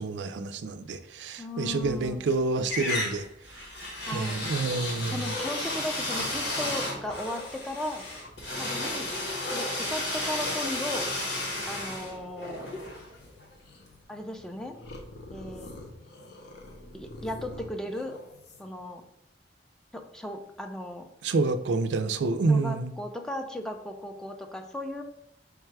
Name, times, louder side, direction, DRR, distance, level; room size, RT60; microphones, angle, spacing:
voice 1, 0.0-3.7 4.1-5.4 21.2-22.9, right 3 dB, 80° right, 10 dB, 0.4 m, -28 dB
voice 2, 1.4-2.3 4.1-4.5 5.1-8.1 8.6-9.1 9.5-11.1 11.7-12.7 14.1-14.8 15.3-15.7 16.9-18.2 18.6-19.0 19.9-21.1 22.5-25.0, left 1 dB, 5° left, 5 dB, 0.4 m, -36 dB
sound 1, 1.7-2.3 2.7-13.5, left 2 dB, 85° left, 1.2 m, -33 dB
sound 2, 4.9-6.6 7.0-7.5 9.4-18.9, left 1 dB, 65° left, 0.6 m, -45 dB
4.7 x 2.2 x 4.6 m, 0.77 s
head